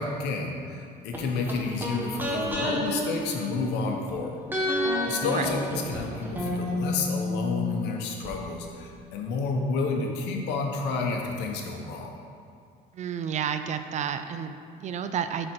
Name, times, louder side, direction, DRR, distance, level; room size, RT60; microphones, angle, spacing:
voice 1, 0.0-4.4 5.1-12.1, left 4 dB, 90° left, 1 dB, 0.9 m, -30 dB
sound 1, 1.1-4.1 4.5-8.3 8.6-8.7, left 1 dB, 10° right, 1.1 m, -30 dB
voice 2, 12.9-15.5, right 8 dB, 45° right, 9 dB, 0.4 m, -31 dB
7.5 x 4.3 x 4.5 m, 2.4 s
cardioid pair, 110°, 17 cm